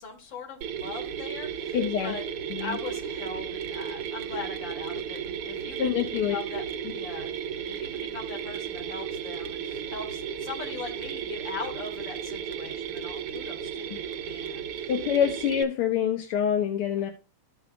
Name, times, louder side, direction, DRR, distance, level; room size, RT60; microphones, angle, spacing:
voice 1, 0.0-2.2 2.6-5.8 6.1-6.6 6.9-7.3 7.7-14.9, left 4 dB, 60° left, 2.5 m, -40 dB
Mechanisms, 0.6-15.6, right 8 dB, 85° right, 1.9 m, -34 dB
voice 2, 1.7-2.1 2.5-2.8 5.8-6.4 14.9-17.1, left 8 dB, 80° left, 1.9 m, -26 dB
14.5 x 5.5 x 2.2 m
omnidirectional pair, 2.4 m